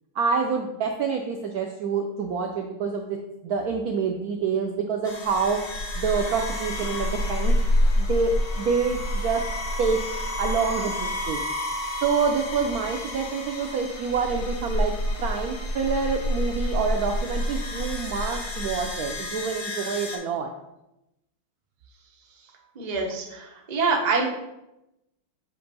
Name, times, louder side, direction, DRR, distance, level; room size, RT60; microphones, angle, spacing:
voice 1, 0.1-3.2 3.4-5.6 6.0-7.5 8.0-9.4 9.8-10.0 10.4-11.5 12.0-14.9 15.2-20.5, right 5 dB, 85° right, 2 dB, 0.8 m, -27 dB
sound 1, 5.0-20.2, left 1 dB, 70° left, 1.5 m, -28 dB
voice 2, 22.7-24.2, right 4 dB, 45° right, 0 dB, 0.5 m, -25 dB
7.6 x 2.6 x 5.3 m, 0.91 s
omnidirectional pair, 2.2 m